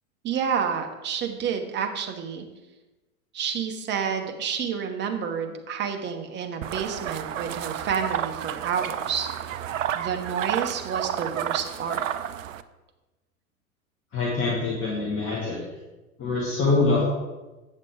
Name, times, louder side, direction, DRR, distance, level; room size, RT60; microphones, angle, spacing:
voice 1, 0.2-2.5 3.3-9.3 9.9-12.0, right 7 dB, 25° right, 4 dB, 1.2 m, -29 dB
sound 1, 6.6-12.6, right 10 dB, 65° right, 0.6 m, -31 dB
voice 2, 14.1-15.6 16.2-17.0, left 3 dB, 30° left, -5 dB, 2.2 m, -24 dB
8.7 x 6.6 x 4.9 m, 1.1 s
figure-of-eight pair, 90°, 43 cm